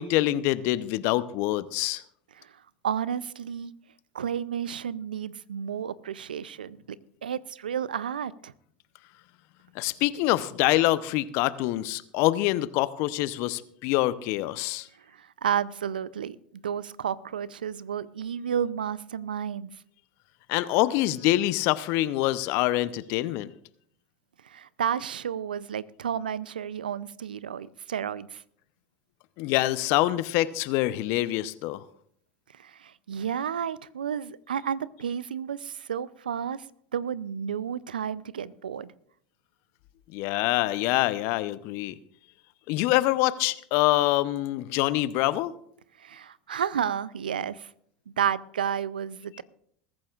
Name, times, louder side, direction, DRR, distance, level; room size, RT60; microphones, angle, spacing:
voice 1, 0.0-2.0 9.7-14.9 20.5-23.5 29.4-31.8 40.1-41.9 42.7-45.5, left 16 dB, 60° left, 16 dB, 0.7 m, -25 dB
voice 2, 2.8-3.7 4.1-6.8 7.2-8.5 15.1-19.7 24.4-28.4 32.5-36.6 36.9-38.9 46.0-47.7 48.2-49.4, right 8 dB, 85° right, 19 dB, 0.5 m, -31 dB
21.5 x 14.0 x 2.4 m, 0.67 s
hypercardioid pair, 85°, 5 cm